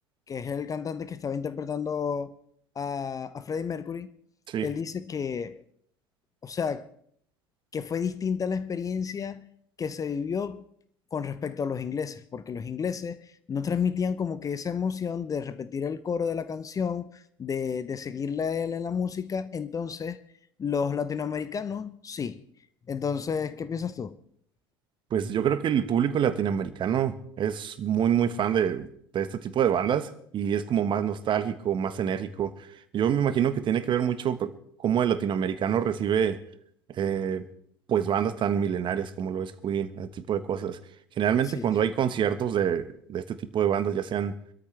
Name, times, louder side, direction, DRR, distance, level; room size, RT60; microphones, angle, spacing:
voice 1, 0.3-2.3 2.8-4.1 4.6-5.6 6.4-6.9 7.7-9.5 9.8-10.6 11.1-20.2 20.6-22.4 22.9-24.2 41.4-41.7, left 6 dB, 25° left, 0.8 m, -31 dB
voice 2, 25.1-28.9 29.1-32.5 32.9-34.5 34.8-36.4 36.9-37.5 37.9-40.8 41.2-44.3, right 8 dB, 40° right, 1.4 m, -26 dB
25.0 x 13.5 x 3.4 m
figure-of-eight pair, 70°, 13 cm